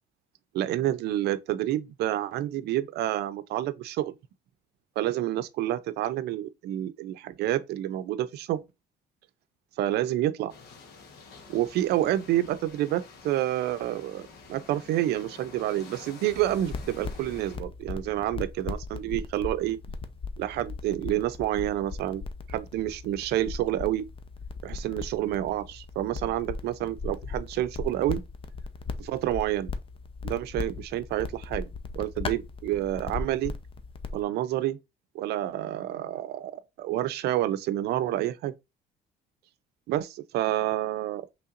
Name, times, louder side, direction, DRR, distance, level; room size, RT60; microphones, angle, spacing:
voice 1, 0.5-4.2 5.0-8.6 9.8-10.5 11.5-19.8 20.4-22.2 22.5-24.1 24.6-28.2 29.0-29.7 30.2-33.5 34.1-34.8 35.1-38.5 39.9-41.2, right 13 dB, 75° right, 0.5 m, -29 dB
sound 1, 10.5-17.6, left 4 dB, 70° left, 1.3 m, -49 dB
sound 2, 16.3-34.2, left 4 dB, 30° left, 0.6 m, -38 dB
5.6 x 3.3 x 2.5 m
cardioid pair, 110°, 17 cm